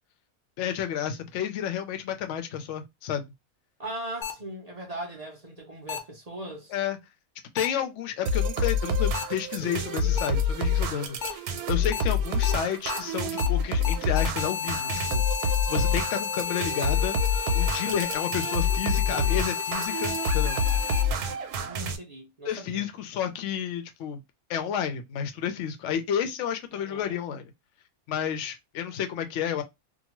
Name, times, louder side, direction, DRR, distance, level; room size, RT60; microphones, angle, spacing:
voice 1, 0.6-3.3 6.7-7.0 7.5-20.6 22.4-24.2 24.5-27.5 28.1-29.6, left 9 dB, 65° left, 0.8 m, -31 dB
voice 2, 3.8-6.7 11.7-12.1 17.6-18.1 21.6-22.9 26.7-27.2, right 1 dB, 45° right, 0.5 m, -40 dB
sound 1, 4.2-4.3 5.9-6.0 7.6-7.7 9.1-9.2 10.2-10.3 11.2-11.3 11.9-12.0 12.4-12.5 12.9-13.0 13.4-13.5 13.8-21.0, left 9 dB, 85° left, 0.4 m, -32 dB
sound 2, 8.3-22.0, left 3 dB, 85° right, 1.1 m, -27 dB
2.7 x 2.2 x 2.9 m
omnidirectional pair, 1.6 m